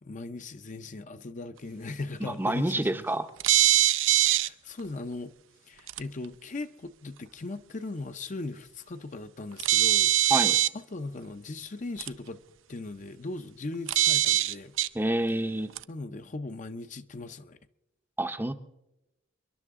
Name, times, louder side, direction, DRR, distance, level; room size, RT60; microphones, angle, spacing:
voice 1, 0.0-3.1 4.2-5.4 5.6-10.3 10.7-12.4 12.7-14.7 15.3-15.4 15.9-17.6, left 2 dB, 40° left, 0.6 m, -38 dB
voice 2, 2.2-3.3 10.3-10.6 14.9-15.7 18.2-18.5, right 1 dB, 10° right, 0.6 m, -28 dB
sound 1, 3.4-4.5 5.9-6.0 9.6-10.7 12.0-12.1 13.9-14.9 15.8-15.9, right 14 dB, 80° right, 0.5 m, -22 dB
28.5 x 11.5 x 3.7 m
head